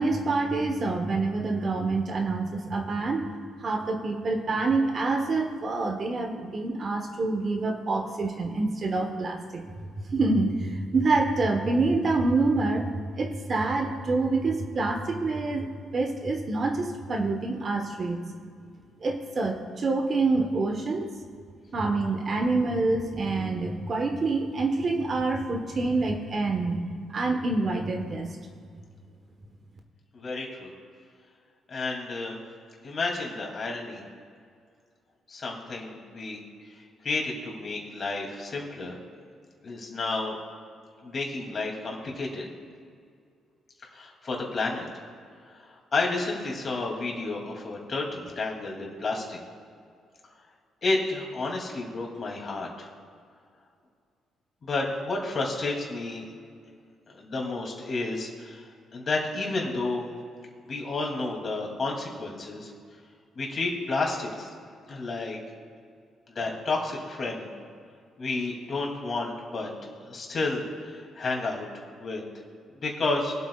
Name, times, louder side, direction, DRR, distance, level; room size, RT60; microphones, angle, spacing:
voice 1, 0.0-9.6 10.1-12.9 13.2-15.7 15.9-18.2 19.0-21.1 21.7-28.4, right 3 dB, 45° right, 4 dB, 1.3 m, -27 dB
voice 2, 30.1-30.7 31.7-32.4 32.8-34.0 35.3-36.4 37.0-39.0 39.6-40.3 41.0-42.5 43.9-44.9 45.5-45.6 45.9-49.4 50.8-52.9 54.6-56.3 57.1-58.6 58.9-60.1 60.7-62.7 63.3-64.5 64.9-65.4 66.3-67.5 68.2-69.7 70.0-71.7 72.0-72.2 72.7-73.3, left 3 dB, 45° left, 0 dB, 2.8 m, -31 dB
23.5 x 8.1 x 2.4 m, 2.2 s
cardioid pair, 90°, 0 cm